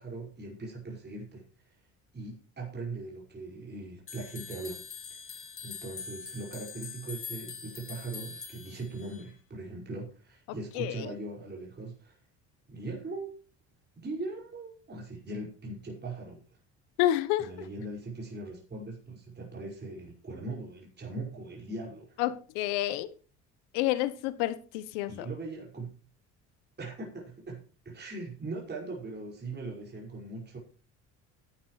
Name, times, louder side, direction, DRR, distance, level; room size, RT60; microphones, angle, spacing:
voice 1, 0.0-1.4 2.1-4.8 5.3-12.2 12.7-13.3 14.0-16.4 17.4-22.2 25.1-25.9 26.8-30.6, right 2 dB, 30° right, 5.6 m, -40 dB
sound 1, 4.1-9.3, left 6 dB, 40° left, 2.6 m, -43 dB
voice 2, 10.7-11.1 17.0-17.5 22.2-23.1 23.7-25.3, left 14 dB, 90° left, 1.0 m, -29 dB
14.5 x 10.5 x 3.2 m
supercardioid pair, 80°, 34 cm